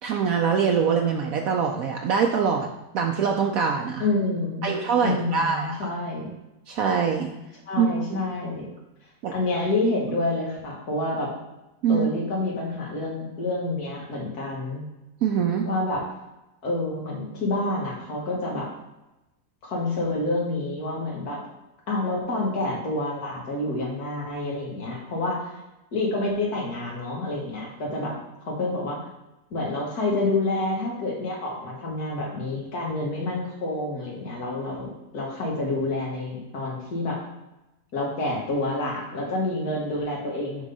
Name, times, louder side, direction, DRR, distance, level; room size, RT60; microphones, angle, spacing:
voice 1, 0.0-2.7 2.9-4.1 4.6-5.9 6.7-7.3 7.8-7.9 8.2-8.3 9.2-9.3 11.8-12.1 15.2-15.7, right 6 dB, 70° right, 2 dB, 1.0 m, -23 dB
voice 2, 4.0-4.7 5.0-6.3 7.7-8.7 9.3-11.3 11.9-14.8 15.7-16.0 16.6-18.7 19.6-21.4 21.9-25.5 25.9-28.1 28.5-29.0 29.5-37.2 37.9-40.6, left 2 dB, 80° left, -2 dB, 2.2 m, -28 dB
6.2 x 3.9 x 5.4 m, 0.98 s
omnidirectional pair, 1.6 m